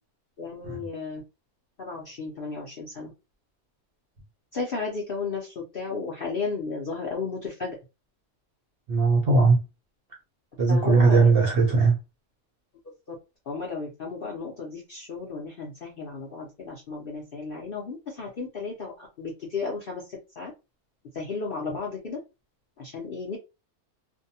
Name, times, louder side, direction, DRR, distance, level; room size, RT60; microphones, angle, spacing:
voice 1, 0.4-1.2 1.8-3.1 4.5-7.8 10.7-11.3 13.5-18.9 19.2-20.0 20.4-20.5 21.1-22.2 22.8-23.4, left 4 dB, 55° left, 0.6 m, -33 dB
voice 2, 8.9-9.6 10.6-12.0, right 4 dB, 50° right, 0.7 m, -19 dB
2.6 x 2.2 x 2.7 m
omnidirectional pair, 1.6 m